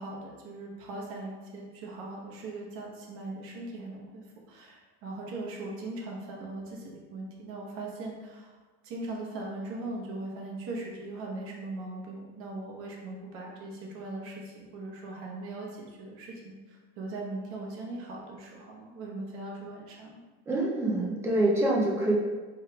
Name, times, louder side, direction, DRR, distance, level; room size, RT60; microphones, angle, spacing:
voice 1, 0.0-8.6 8.8-20.2, right 2 dB, 40° right, -2 dB, 0.9 m, -40 dB
voice 2, 20.5-22.1, right 1 dB, 10° right, -3 dB, 0.3 m, -26 dB
4.9 x 3.5 x 2.3 m, 1.3 s
cardioid pair, 170°, 32 cm